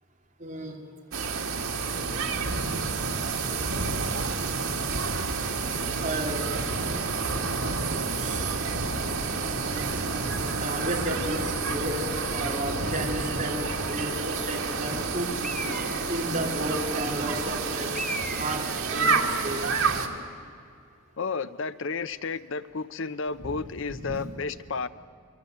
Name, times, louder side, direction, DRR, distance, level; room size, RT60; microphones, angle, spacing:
voice 1, 0.4-0.8 3.2-3.3 6.0-6.6 8.1-8.7 10.6-15.5 16.1-18.0 18.3-19.7 23.4-23.5 23.9-24.2, right 1 dB, 35° right, 2.9 m, -33 dB
sound 1, 1.1-20.1, right 4 dB, 85° right, 2.1 m, -29 dB
Engine, 8.0-19.7, right 1 dB, 30° left, 5.2 m, -41 dB
Bird, 15.4-16.3 17.9-18.9, right 1 dB, 5° left, 1.2 m, -36 dB
voice 2, 21.2-24.9, left 4 dB, 65° left, 0.6 m, -32 dB
24.0 x 23.0 x 8.0 m
head